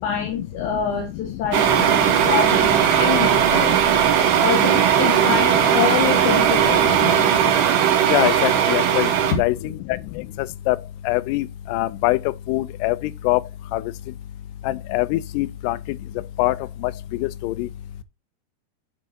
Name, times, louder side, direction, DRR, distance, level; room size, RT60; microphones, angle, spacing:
voice 1, 0.0-3.7 4.4-7.0 9.6-9.7, left 7 dB, 60° left, 2.4 m, -26 dB
sound 1, 1.5-9.3, right 9 dB, 90° right, 3.3 m, -18 dB
voice 2, 8.1-9.1 9.4-9.5 10.7-10.8 11.1-11.5 11.7-12.2 12.5-13.0 13.3-13.4 13.7-13.8 14.9-15.8 16.4-16.5 17.4-17.7, left 19 dB, 90° left, 2.7 m, -22 dB
9.3 x 7.1 x 2.6 m
omnidirectional pair, 4.7 m